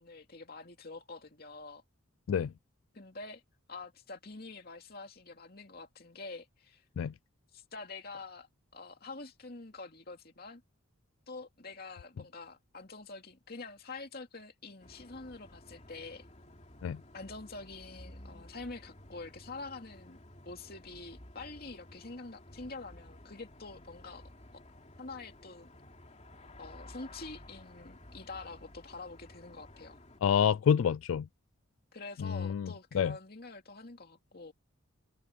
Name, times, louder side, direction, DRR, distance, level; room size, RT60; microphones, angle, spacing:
voice 1, 0.0-1.8 2.9-3.4 3.7-6.8 7.5-8.5 8.7-10.6 11.3-16.3 17.1-20.2 20.5-24.6 25.0-25.7 26.6-30.0 31.9-34.5, left 3 dB, 50° left, 2.6 m, -46 dB
sound 1, 14.8-30.2, left 1 dB, 35° left, 3.1 m, -54 dB
voice 2, 30.2-31.3 32.2-33.1, left 7 dB, 90° left, 0.3 m, -28 dB
head